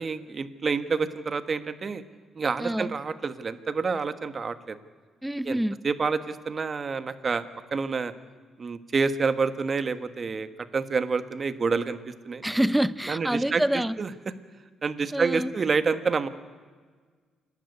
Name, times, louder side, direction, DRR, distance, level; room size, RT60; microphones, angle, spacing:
voice 1, 0.0-2.0 2.3-4.8 5.4-5.6 5.8-7.4 7.7-8.1 8.6-10.5 10.7-12.4 13.1-13.6 14.0-14.1 14.8-16.3, right 4 dB, 40° right, 12 dB, 1.4 m, -28 dB
voice 2, 2.6-2.9 5.2-5.8 12.4-14.0 15.1-15.5, right 1 dB, 5° right, 18 dB, 0.6 m, -26 dB
28.0 x 12.5 x 9.7 m, 1.5 s
cardioid pair, 90°, 0 cm